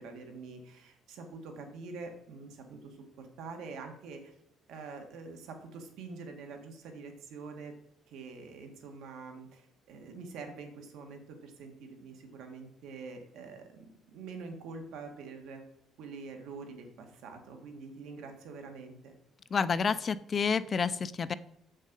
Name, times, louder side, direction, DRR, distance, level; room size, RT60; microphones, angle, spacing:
voice 1, 0.0-4.3 4.7-7.7 8.1-15.6 16.0-19.1, right 4 dB, 80° right, 4 dB, 1.6 m, -45 dB
voice 2, 19.5-21.3, left 5 dB, 30° left, 14 dB, 0.4 m, -29 dB
7.4 x 6.5 x 5.3 m, 0.75 s
cardioid pair, 155°, 0 cm